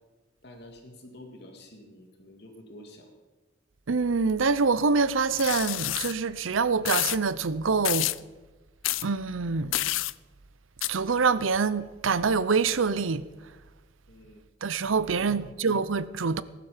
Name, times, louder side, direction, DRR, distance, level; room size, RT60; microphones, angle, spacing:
voice 1, 0.4-3.1 14.1-14.4 15.1-15.4, left 1 dB, 55° left, 2.3 m, -48 dB
voice 2, 3.9-8.1 9.0-9.8 10.9-13.3 14.6-16.4, right 4 dB, 90° right, 0.7 m, -25 dB
sound 1, 5.4-6.1 6.8-7.2 7.8-8.2 8.8-9.0 9.7-10.1 10.8-10.9, left 16 dB, 80° left, 0.4 m, -28 dB
19.0 x 12.0 x 5.1 m
head